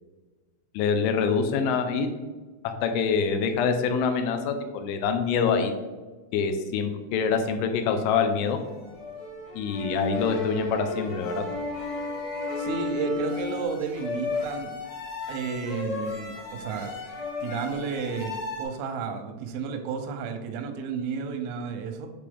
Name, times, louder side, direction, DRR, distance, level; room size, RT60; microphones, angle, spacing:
voice 1, 0.7-2.1 2.6-5.7 6.3-8.6 9.5-11.4, left 6 dB, 85° left, 6 dB, 3.1 m, -25 dB
sound 1, 8.1-18.6, left 2 dB, 60° left, 1.9 m, -34 dB
voice 2, 12.6-14.8 15.3-17.0 17.4-22.1, right 5 dB, 85° right, 6 dB, 3.3 m, -32 dB
8.5 x 3.3 x 3.5 m, 1.3 s
omnidirectional pair, 5.6 m